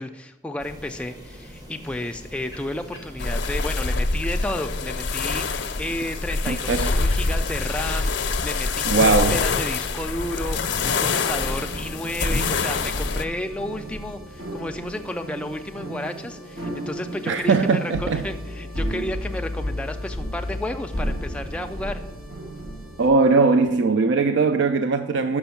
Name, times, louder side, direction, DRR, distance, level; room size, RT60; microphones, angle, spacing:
voice 1, 0.0-22.0, left 1 dB, 5° left, 0.4 m, -32 dB
sound 1, 0.6-12.6, equal, 20° right, 0.9 m, -43 dB
sound 2, 3.2-13.2, left 4 dB, 85° left, 0.5 m, -25 dB
voice 2, 6.5-6.9 8.8-9.4 17.3-18.3 23.0-25.4, right 4 dB, 85° right, 0.4 m, -20 dB
sound 3, 11.1-23.1, equal, 60° right, 1.6 m, -32 dB
6.1 x 6.1 x 5.8 m
head